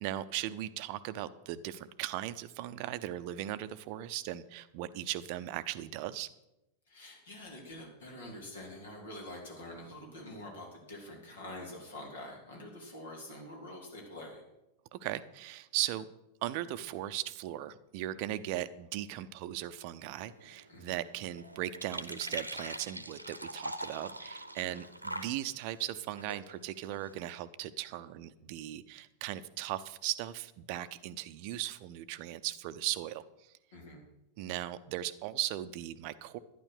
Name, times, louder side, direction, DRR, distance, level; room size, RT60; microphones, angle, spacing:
voice 1, 0.0-6.3 14.9-16.1 16.4-33.5 34.4-36.4, right 13 dB, 45° right, 14 dB, 0.7 m, -38 dB
voice 2, 6.9-14.4 20.7-21.0 24.6-24.8 33.7-34.0, left 1 dB, 65° left, 0 dB, 3.9 m, -46 dB
sound 1, 20.1-27.3, right 1 dB, 85° right, 1.0 m, -44 dB
12.0 x 10.0 x 6.5 m, 0.91 s
figure-of-eight pair, 90°, 0 cm